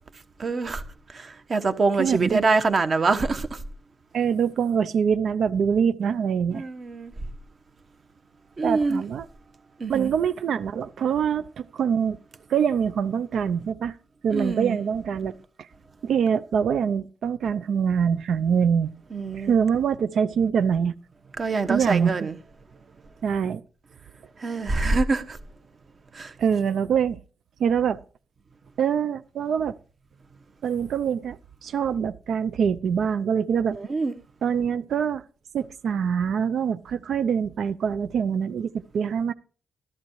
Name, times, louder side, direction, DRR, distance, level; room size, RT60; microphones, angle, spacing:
voice 1, 0.4-0.8 1.1-3.6 6.5-7.1 8.6-9.0 9.8-10.1 14.3-14.8 19.1-19.5 21.4-22.4 24.4-25.4 26.1-26.3 33.7-34.1, right 3 dB, 30° right, 1.2 m, -25 dB
voice 2, 2.0-2.4 4.1-6.6 8.6-9.3 9.9-12.2 12.5-14.0 14.2-15.4 16.0-18.9 19.3-20.9 21.7-22.3 23.2-23.6 26.4-27.2 27.6-28.0 28.8-29.8 30.6-31.4 31.6-33.8 34.4-35.2 35.5-39.3, right 7 dB, 60° right, 0.6 m, -24 dB
14.0 x 13.0 x 3.1 m
wide cardioid pair, 165°, 0 cm